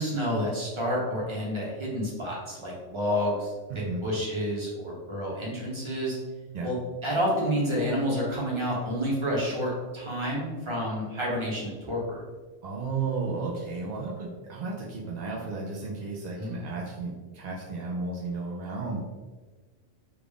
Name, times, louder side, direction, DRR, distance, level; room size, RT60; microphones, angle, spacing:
voice 1, 0.0-3.5 4.0-6.2 6.6-6.8 7.0-12.2 16.4-16.6, equal, 25° right, -5 dB, 0.9 m, -29 dB
voice 2, 3.7-4.0 6.5-6.7 12.6-19.0, right 4 dB, 75° right, -3 dB, 0.4 m, -33 dB
3.3 x 2.4 x 3.6 m, 1.3 s
omnidirectional pair, 1.3 m